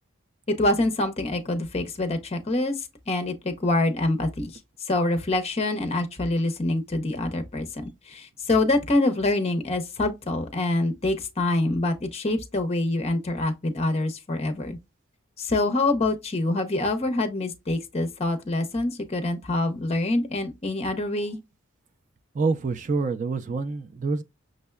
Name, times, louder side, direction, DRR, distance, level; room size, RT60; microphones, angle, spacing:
voice 1, 0.5-4.5 4.8-14.8 15.4-21.4, left 2 dB, 30° left, 0.7 m, -25 dB
voice 2, 22.3-24.2, right 4 dB, 40° right, 0.4 m, -26 dB
6.2 x 2.1 x 2.2 m
head